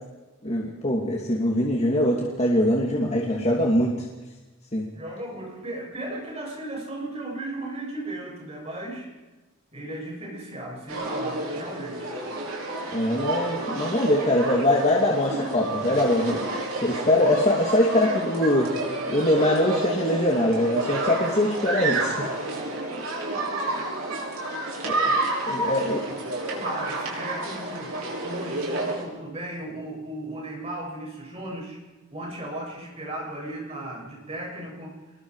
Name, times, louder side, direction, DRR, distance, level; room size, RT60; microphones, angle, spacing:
voice 1, 0.4-4.1 4.7-4.9 12.9-16.4 16.8-18.8 19.1-22.3 24.8-25.1 25.5-26.0, left 1 dB, 30° left, -2 dB, 2.5 m, -23 dB
voice 2, 4.9-9.1 9.7-12.2 15.3-16.0 23.3-23.4 26.5-28.0 28.2-31.8 32.1-34.9, right 1 dB, 30° right, -2 dB, 7.2 m, -36 dB
sound 1, 10.9-29.0, right 2 dB, 80° right, 6.1 m, -30 dB
27.0 x 21.5 x 4.9 m, 1.2 s
head